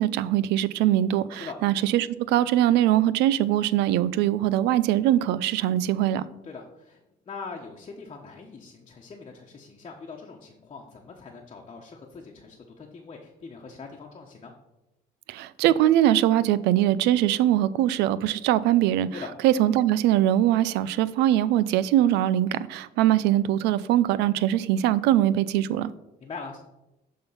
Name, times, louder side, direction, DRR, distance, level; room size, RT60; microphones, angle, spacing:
voice 1, 0.0-6.2 15.3-19.1 19.4-25.9, right 12 dB, 90° right, 0.4 m, -22 dB
voice 2, 6.4-7.0 7.3-14.5 19.1-19.3 26.2-26.6, left 4 dB, 35° left, 1.1 m, -42 dB
11.0 x 3.7 x 5.6 m
cardioid pair, 110°, 17 cm